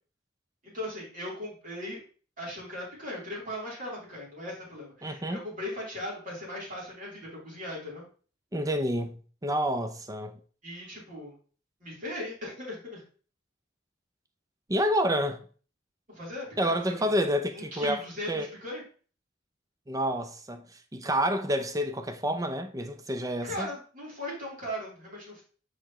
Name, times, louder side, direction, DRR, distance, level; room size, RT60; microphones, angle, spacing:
voice 1, 0.6-2.0 2.4-8.0 10.6-11.3 11.8-13.0 16.1-17.1 17.5-18.8 23.4-25.4, left 1 dB, 45° right, 3.2 m, -38 dB
voice 2, 5.0-5.5 8.5-10.4 14.7-15.4 16.6-18.5 19.9-23.7, equal, 20° right, 0.5 m, -29 dB
6.8 x 4.9 x 3.0 m
head